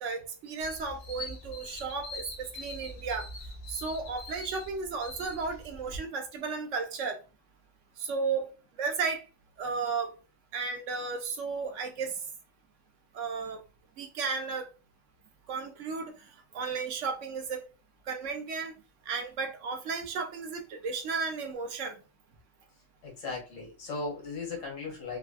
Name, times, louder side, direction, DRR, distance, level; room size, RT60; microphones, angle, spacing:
voice 1, 0.0-3.3 3.7-7.2 8.0-8.5 8.8-9.2 9.6-10.1 10.5-12.2 13.1-13.6 14.0-14.7 15.5-17.6 18.1-18.7 19.1-22.0, right 4 dB, 70° right, 1.0 m, -34 dB
sound 1, 0.6-6.0, left 1 dB, 60° left, 0.9 m, -43 dB
voice 2, 23.0-25.2, left 3 dB, 80° left, 1.5 m, -37 dB
3.2 x 2.3 x 2.4 m
omnidirectional pair, 1.3 m